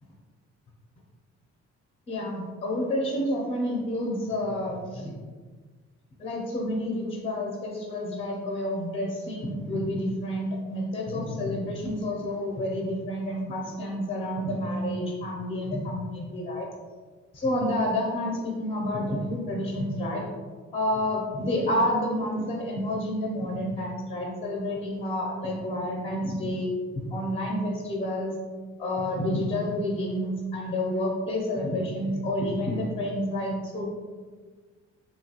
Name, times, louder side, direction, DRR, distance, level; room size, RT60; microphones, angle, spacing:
voice 1, 2.1-5.1 6.2-16.7 17.3-20.2 20.7-28.4 28.8-33.9, left 1 dB, 20° left, -1 dB, 0.5 m, -29 dB
2.8 x 2.2 x 2.8 m, 1.5 s
cardioid pair, 90°, 30 cm